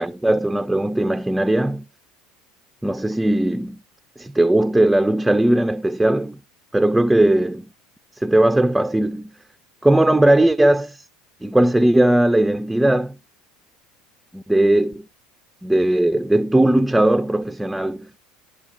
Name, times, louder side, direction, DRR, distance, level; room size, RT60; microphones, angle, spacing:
voice 1, 0.0-1.8 2.8-3.8 4.2-6.4 6.7-7.7 8.2-9.3 9.8-11.0 11.4-13.2 14.3-15.0 15.6-18.2, right 1 dB, 5° right, 0.4 m, -18 dB
11.0 x 5.0 x 2.5 m
figure-of-eight pair, 70°, 0 cm